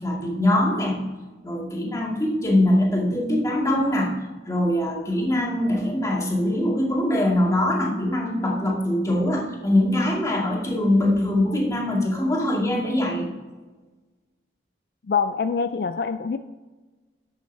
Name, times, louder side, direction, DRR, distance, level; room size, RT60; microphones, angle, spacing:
voice 1, 0.0-1.0 1.4-4.1 4.5-13.3, left 1 dB, 20° left, -2 dB, 2.2 m, -22 dB
voice 2, 15.1-16.4, left 5 dB, 60° left, 10 dB, 0.4 m, -24 dB
11.5 x 8.0 x 3.4 m, 1.3 s
head